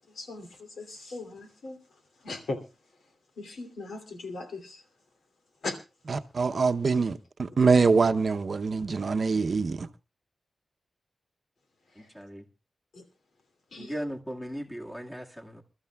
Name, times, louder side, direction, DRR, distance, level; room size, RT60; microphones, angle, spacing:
voice 1, 0.2-0.5 0.8-1.8 2.2-2.6 3.4-4.8 5.6-5.8 12.9-13.0 13.7-13.9, left 2 dB, 75° left, 2.6 m, -38 dB
voice 2, 6.1-9.9, right 4 dB, 50° right, 0.7 m, -24 dB
voice 3, 12.0-12.4 13.8-15.6, equal, 10° left, 1.7 m, -38 dB
28.0 x 13.0 x 2.3 m
wide cardioid pair, 110°, 0 cm